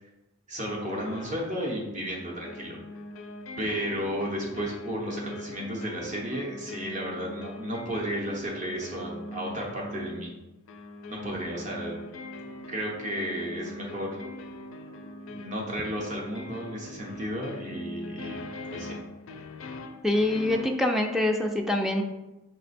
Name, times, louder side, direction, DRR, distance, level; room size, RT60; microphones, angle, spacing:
voice 1, 0.5-2.8 3.6-10.3 11.1-12.0 12.7-14.2 15.3-18.4 18.7-19.0, equal, 35° right, -2 dB, 0.9 m, -33 dB
sound 1, 0.9-1.6 2.1-20.8, left 1 dB, 70° left, 0.4 m, -42 dB
voice 2, 20.0-22.0, left 1 dB, ahead, 3 dB, 0.3 m, -25 dB
5.7 x 2.1 x 4.1 m, 1.0 s
head